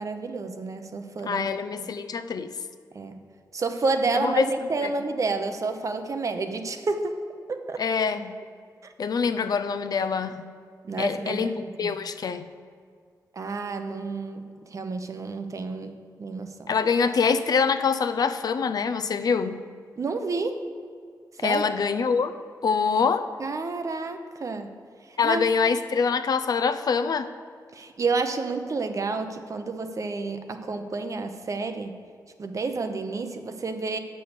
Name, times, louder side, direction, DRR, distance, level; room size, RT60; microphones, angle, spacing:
voice 1, 0.0-1.6 2.9-3.2 3.5-7.2 7.5-7.8 8.8-8.9 10.8-11.9 13.3-16.7 20.0-20.6 21.4-21.7 23.4-24.7 25.2-25.5 27.7-32.0 32.4-34.0, right 3 dB, 50° right, 7 dB, 0.7 m, -30 dB
voice 2, 1.2-2.5 4.1-4.5 4.8-4.9 7.8-8.4 9.0-10.5 11.0-12.4 16.7-19.6 21.4-23.3 25.2-27.3, left 5 dB, 65° left, 10 dB, 0.5 m, -25 dB
8.3 x 6.1 x 6.8 m, 2.1 s
wide cardioid pair, 120°, 7 cm